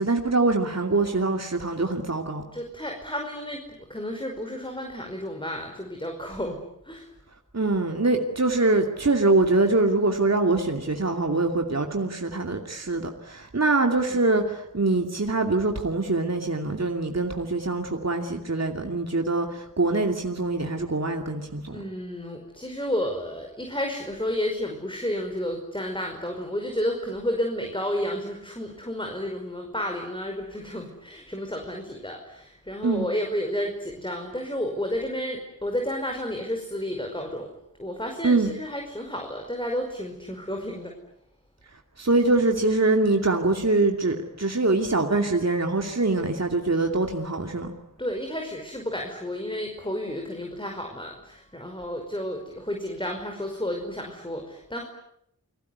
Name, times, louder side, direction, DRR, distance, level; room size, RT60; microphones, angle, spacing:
voice 1, 0.0-2.4 7.5-21.8 32.8-33.1 38.2-38.5 42.0-47.7, right 2 dB, 50° right, 3 dB, 2.6 m, -24 dB
voice 2, 2.5-3.6 3.9-6.6 6.8-7.1 14.1-14.2 21.7-37.5 37.8-40.9 48.0-54.9, left 1 dB, 15° left, 3 dB, 5.2 m, -31 dB
29.5 x 21.5 x 9.6 m, 0.75 s
wide cardioid pair, 60°, 33 cm